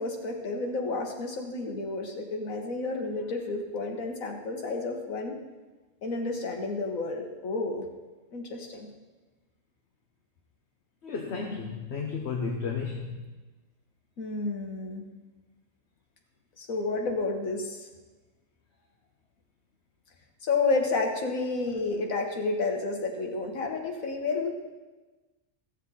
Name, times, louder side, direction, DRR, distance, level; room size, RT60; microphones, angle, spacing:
voice 1, 0.0-5.4 6.0-7.9 8.3-8.9 14.2-15.1 16.6-17.9 20.4-24.6, left 3 dB, 85° left, 3 dB, 1.8 m, -31 dB
voice 2, 11.0-13.2, left 5 dB, 55° left, 1 dB, 1.2 m, -33 dB
16.0 x 7.2 x 4.2 m, 1.2 s
omnidirectional pair, 1.4 m